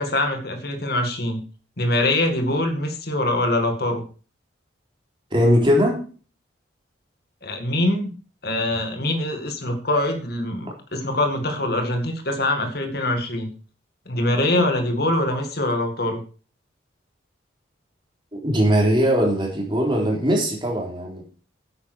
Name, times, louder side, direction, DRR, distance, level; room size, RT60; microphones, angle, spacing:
voice 1, 0.0-1.4 1.8-4.0 7.4-8.1 8.4-13.5 14.1-16.2, left 1 dB, 55° left, 5 dB, 2.1 m, -23 dB
voice 2, 5.3-6.0 18.3-21.2, equal, 25° right, 0 dB, 3.9 m, -20 dB
9.8 x 9.0 x 6.3 m, 0.38 s
head